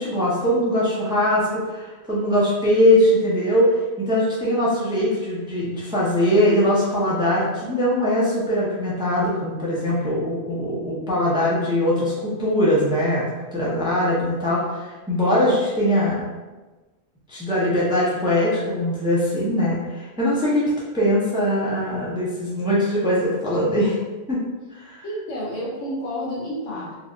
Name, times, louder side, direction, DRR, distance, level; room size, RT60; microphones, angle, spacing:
voice 1, 0.0-13.3 13.5-16.2 17.3-20.6 20.9-24.0 24.3-24.4 24.7-25.0, left 1 dB, 5° right, -7 dB, 0.6 m, -21 dB
voice 2, 25.0-27.0, equal, 80° left, -5 dB, 1.2 m, -30 dB
3.9 x 2.6 x 2.4 m, 1.2 s
omnidirectional pair, 1.2 m